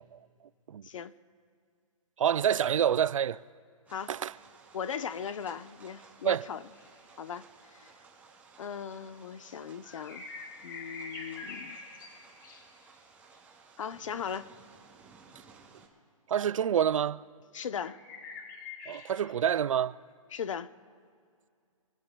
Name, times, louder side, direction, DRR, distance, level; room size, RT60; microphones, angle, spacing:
voice 1, 2.2-3.4 4.1-4.3 6.2-6.5 16.3-17.2 18.9-20.0, right 9 dB, 70° right, 0.5 m, -27 dB
sound 1, 3.9-15.9, right 5 dB, 10° right, 2.4 m, -57 dB
voice 2, 4.7-6.6 7.2-7.9 8.6-10.2 10.6-11.8 13.8-14.5 17.5-18.0 20.3-20.7, left 7 dB, 65° left, 0.8 m, -38 dB
sound 2, 6.7-6.9 9.8-12.8 17.8-19.3, left 4 dB, 40° left, 2.1 m, -45 dB
28.0 x 18.0 x 2.3 m
hypercardioid pair, 155°, 17 cm